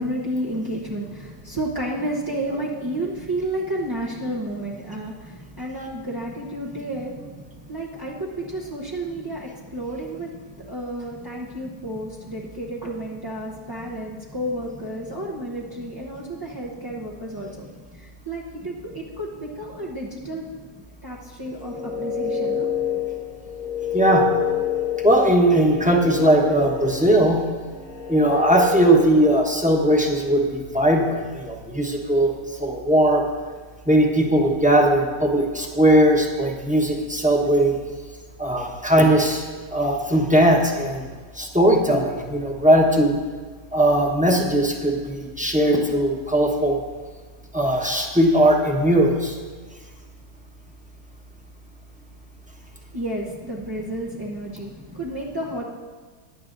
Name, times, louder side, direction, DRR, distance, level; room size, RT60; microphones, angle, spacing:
voice 1, 0.0-7.3 7.7-10.3 10.7-17.6 17.9-20.4 21.0-22.7 52.9-54.7 55.0-55.6, right 1 dB, 25° right, -4 dB, 0.5 m, -31 dB
sound 1, 21.5-29.4, left 8 dB, 35° left, 1.2 m, -28 dB
voice 2, 25.0-27.4 28.1-32.4 32.6-33.2 33.9-37.7 38.4-39.4 39.7-41.0 41.4-43.1 43.7-46.8 47.5-49.3, right 1 dB, 5° right, -1 dB, 0.9 m, -19 dB
16.5 x 10.5 x 2.6 m, 1.5 s
omnidirectional pair, 1.8 m